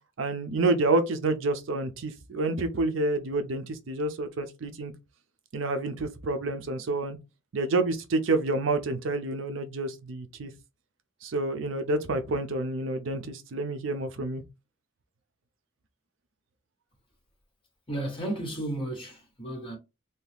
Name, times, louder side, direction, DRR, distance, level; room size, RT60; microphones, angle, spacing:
voice 1, 0.2-4.9 5.5-7.2 7.5-10.5 11.2-14.4, right 2 dB, 70° right, 0.5 m, -28 dB
voice 2, 17.9-19.8, right 1 dB, 25° left, 1.1 m, -33 dB
2.8 x 2.2 x 3.3 m
head